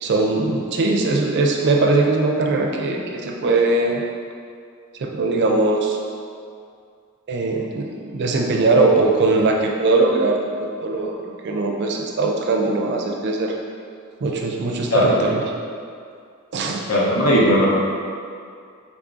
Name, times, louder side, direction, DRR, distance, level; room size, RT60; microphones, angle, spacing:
voice 1, 0.0-4.0 4.9-6.0 7.3-13.5 14.2-15.4 16.5-16.9, right 3 dB, 55° right, 1 dB, 0.4 m, -20 dB
voice 2, 16.9-17.7, equal, 90° left, -5 dB, 0.8 m, -17 dB
3.6 x 3.4 x 2.5 m, 2.3 s
head